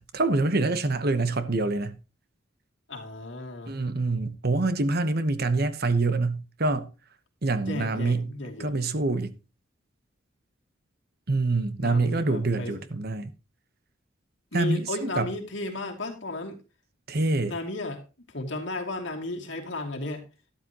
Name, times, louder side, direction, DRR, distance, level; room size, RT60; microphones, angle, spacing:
voice 1, 0.0-2.0 3.7-6.9 7.4-8.3 8.6-9.3 11.3-13.3 14.5-15.3 17.1-17.5, right 3 dB, 50° right, 1.0 m, -26 dB
voice 2, 2.9-3.8 7.7-8.8 11.8-12.8 14.5-16.6 17.5-18.0 18.3-20.2, left 2 dB, 60° left, 2.7 m, -34 dB
12.5 x 12.0 x 3.0 m
head